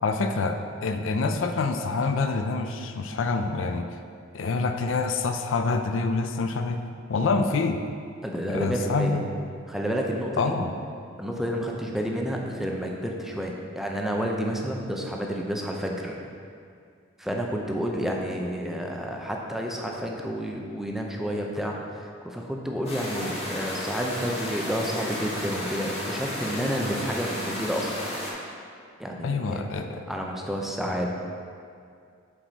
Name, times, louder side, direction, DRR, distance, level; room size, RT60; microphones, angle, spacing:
voice 1, 0.0-3.9 4.3-6.8 7.1-7.8 8.5-9.3 10.4-10.7 29.2-30.1, left 4 dB, 75° left, 6 dB, 0.4 m, -26 dB
voice 2, 8.2-9.2 9.7-10.6 11.2-16.2 17.2-28.0 29.0-29.7 30.1-31.1, equal, ahead, 0 dB, 0.5 m, -30 dB
sound 1, 22.9-28.3, left 1 dB, 30° left, 1.5 m, -33 dB
7.4 x 4.7 x 4.0 m, 2.3 s
head